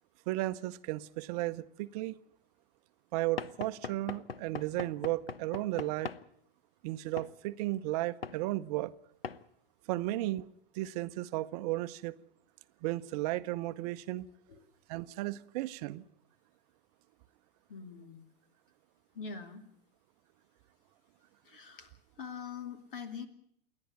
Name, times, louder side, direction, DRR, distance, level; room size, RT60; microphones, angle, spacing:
voice 1, 0.3-2.2 3.1-6.1 6.8-8.9 9.9-10.5 10.7-12.1 12.8-14.3 14.9-16.0, right 17 dB, 40° right, 0.7 m, -34 dB
Knock / Wood, 3.4-6.3 7.2-7.3 8.2-8.4 9.2-9.4, left 6 dB, 85° left, 0.8 m, -41 dB
voice 2, 17.7-18.2 19.1-19.6 21.4-21.9 22.2-23.3, left 6 dB, 65° left, 2.6 m, -43 dB
28.0 x 11.0 x 9.4 m
figure-of-eight pair, 95°, 29 cm